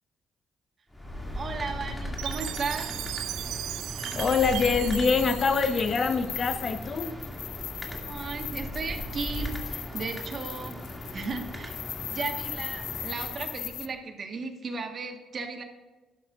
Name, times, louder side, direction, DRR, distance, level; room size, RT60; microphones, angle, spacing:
sound 1, 0.9-13.9, left 1 dB, 10° left, 2.3 m, -38 dB
voice 1, 1.3-2.9 8.0-10.8 11.1-11.7 12.1-15.6, right 4 dB, 45° right, 5 dB, 1.5 m, -35 dB
Chime, 2.2-6.4, right 13 dB, 90° right, 0.3 m, -37 dB
sound 2, 4.1-13.9, left 11 dB, 75° left, 0.4 m, -39 dB
voice 2, 4.1-7.1, left 5 dB, 45° left, 8 dB, 0.9 m, -25 dB
11.5 x 11.5 x 2.5 m, 1.2 s
cardioid pair, 90°, 0 cm